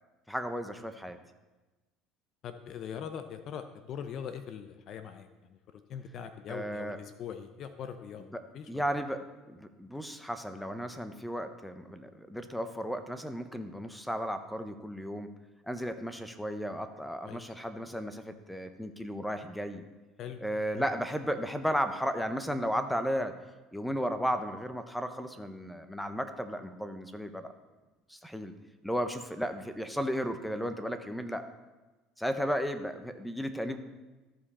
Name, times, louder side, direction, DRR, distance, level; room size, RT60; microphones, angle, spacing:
voice 1, 0.3-1.2 6.5-7.0 8.3-8.4 8.7-15.3 15.7-19.8 20.4-23.3 23.7-27.5 28.1-28.5 28.8-31.5 32.2-33.8, equal, ahead, 9 dB, 0.7 m, -34 dB
voice 2, 2.4-8.3 8.5-9.0 17.2-17.4 20.2-20.4 20.7-20.9, left 8 dB, 50° left, 9 dB, 0.6 m, -42 dB
14.0 x 5.2 x 4.2 m, 1.2 s
supercardioid pair, 105°, 0 cm